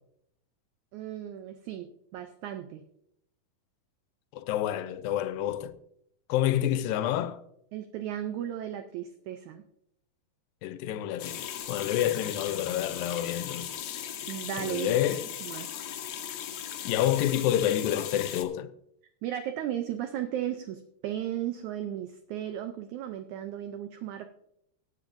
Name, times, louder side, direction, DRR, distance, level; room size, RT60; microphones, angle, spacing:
voice 1, 0.9-2.8 7.7-9.6 14.3-15.7 19.2-24.3, right 11 dB, 80° right, 1.7 m, -35 dB
voice 2, 4.3-5.8 6.3-7.4 10.6-14.1 14.6-15.2 16.9-18.7, left 12 dB, 85° left, 2.4 m, -28 dB
sound 1, 11.2-18.4, left 9 dB, 65° left, 1.9 m, -38 dB
17.0 x 9.8 x 2.6 m
omnidirectional pair, 4.0 m